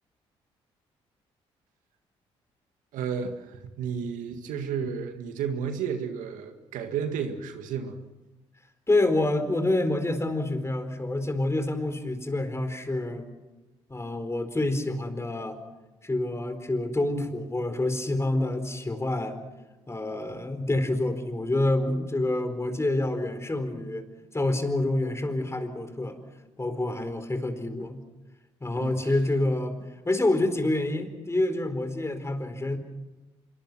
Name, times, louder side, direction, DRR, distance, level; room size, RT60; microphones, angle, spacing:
voice 1, 2.9-8.0 28.8-29.0, right 7 dB, 75° right, 6 dB, 2.0 m, -32 dB
voice 2, 8.9-13.3 13.9-15.6 16.0-19.4 19.9-24.1 24.3-26.2 26.6-28.0 28.6-29.8 30.0-32.8, left 2 dB, 20° left, 8 dB, 4.4 m, -27 dB
26.0 x 23.5 x 6.2 m, 1.1 s
hypercardioid pair, 50°, 13 cm